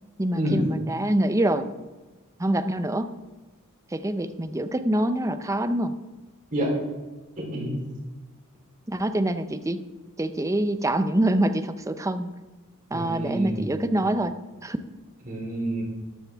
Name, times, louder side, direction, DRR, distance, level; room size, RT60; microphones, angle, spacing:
voice 1, 0.2-1.7 2.4-3.1 3.9-5.9 8.9-9.8 10.2-12.3 12.9-14.3 14.6-14.8, right 1 dB, 15° right, 10 dB, 0.6 m, -25 dB
voice 2, 7.4-7.8 12.9-13.7 15.3-15.8, right 1 dB, 35° right, -2 dB, 3.8 m, -28 dB
13.5 x 12.0 x 3.5 m, 1.2 s
head